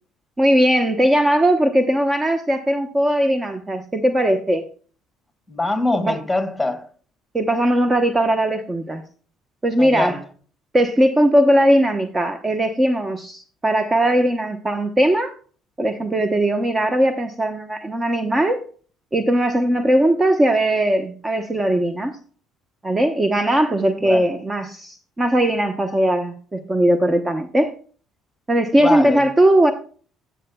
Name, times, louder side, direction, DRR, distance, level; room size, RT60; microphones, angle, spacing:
voice 1, 0.4-4.6 6.1-6.2 7.3-9.0 9.6-10.2 10.7-15.3 15.8-18.6 19.1-22.2 22.8-27.7 28.5-29.7, right 1 dB, 20° right, 0.9 m, -19 dB
voice 2, 5.5-6.9 9.8-10.2 24.0-24.3 28.8-29.2, left 2 dB, 5° left, 2.0 m, -23 dB
13.0 x 7.8 x 2.2 m
supercardioid pair, 80°, 0 cm